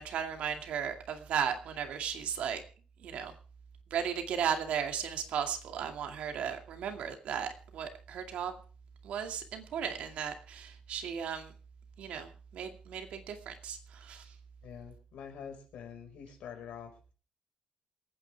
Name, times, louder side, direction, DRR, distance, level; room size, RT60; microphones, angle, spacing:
voice 1, 0.0-2.6 3.0-3.3 3.9-8.6 9.0-11.5 12.0-14.3, right 8 dB, 70° right, 5 dB, 2.3 m, -35 dB
voice 2, 14.6-17.1, left 7 dB, 75° left, 4 dB, 5.2 m, -46 dB
27.5 x 9.5 x 3.5 m, 0.36 s
cardioid pair, 150°, 2 cm